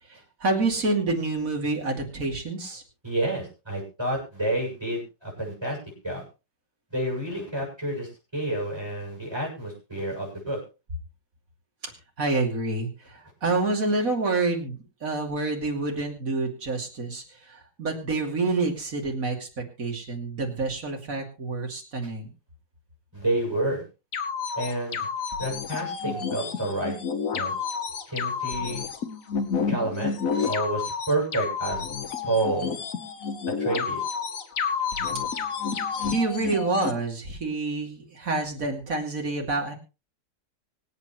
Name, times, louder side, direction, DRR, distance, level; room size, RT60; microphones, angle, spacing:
voice 1, 0.4-2.8 12.2-17.2 17.5-22.3 36.0-39.7, right 3 dB, 50° right, 2 dB, 3.1 m, -28 dB
voice 2, 3.0-5.8 6.0-6.2 6.9-10.6 23.1-23.8 24.6-26.9 27.3-27.5 28.1-28.8 29.7-30.1 30.5-31.8 32.2-32.8 33.6-34.0, right 1 dB, 15° right, -1 dB, 7.3 m, -29 dB
sound 1, 24.1-36.9, left 6 dB, 50° left, 1.5 m, -30 dB
24.5 x 8.6 x 3.2 m, 0.30 s
omnidirectional pair, 1.9 m